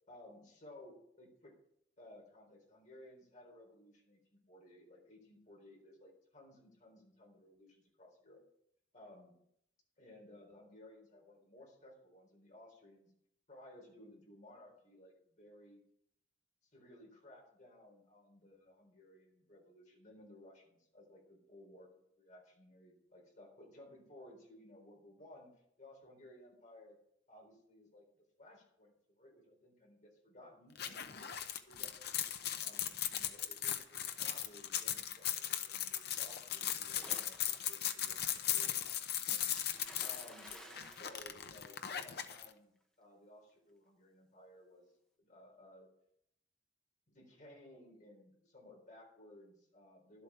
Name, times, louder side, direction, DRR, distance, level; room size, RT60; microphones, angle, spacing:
voice 1, 0.1-1.5 2.0-8.4 8.9-9.4 10.0-13.1 13.5-15.8 16.6-21.9 22.2-27.0 27.3-28.1 28.4-32.1 32.6-38.2 38.5-39.5 40.0-45.9 47.1-50.2, left 1 dB, 40° left, 0 dB, 4.0 m, -58 dB
sound 1, 30.8-42.5, left 10 dB, 60° left, 0.8 m, -38 dB
Splash splatter, 37.0-37.9 39.6-42.0, equal, 5° left, 1.6 m, -54 dB
12.0 x 8.3 x 6.2 m, 0.73 s
head